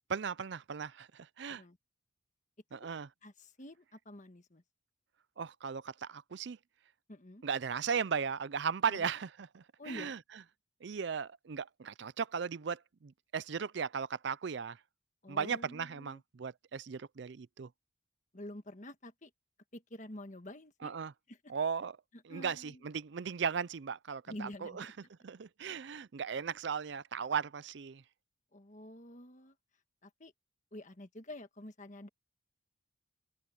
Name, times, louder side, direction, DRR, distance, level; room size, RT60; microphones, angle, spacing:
voice 1, 0.1-1.6 2.7-3.1 5.4-6.6 7.4-10.2 10.8-14.8 15.3-17.7 20.8-21.1 21.5-22.0 22.2-24.9 25.2-28.0, right 6 dB, 55° right, 0.4 m, -37 dB
voice 2, 3.2-4.6 7.1-7.4 8.9-9.1 9.8-10.2 15.2-16.2 18.3-19.3 19.7-20.9 21.3-21.4 22.3-22.8 24.3-24.9 28.5-29.5 30.0-30.3 30.7-32.1, left 1 dB, 35° left, 1.5 m, -48 dB
open air
head